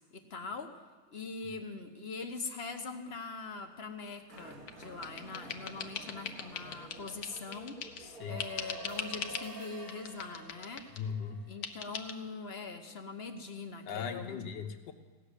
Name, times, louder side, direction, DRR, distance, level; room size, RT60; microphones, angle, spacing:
voice 1, 0.1-0.8 1.1-7.7 8.2-10.9 11.5-14.4, left 4 dB, 40° left, 6 dB, 1.2 m, -42 dB
Motorcycle, 4.3-9.4, right 3 dB, 60° right, 2.0 m, -52 dB
sound 1, 4.4-8.1 8.4-9.5 9.9-11.1 11.6-12.1, left 7 dB, 65° left, 1.3 m, -41 dB
voice 2, 8.0-8.4 11.0-11.4 13.9-14.9, left 7 dB, 85° left, 5 dB, 1.6 m, -38 dB
sound 2, 8.0-12.6, right 2 dB, 25° right, 0.4 m, -49 dB
17.0 x 7.3 x 9.8 m, 1.3 s
omnidirectional pair, 1.8 m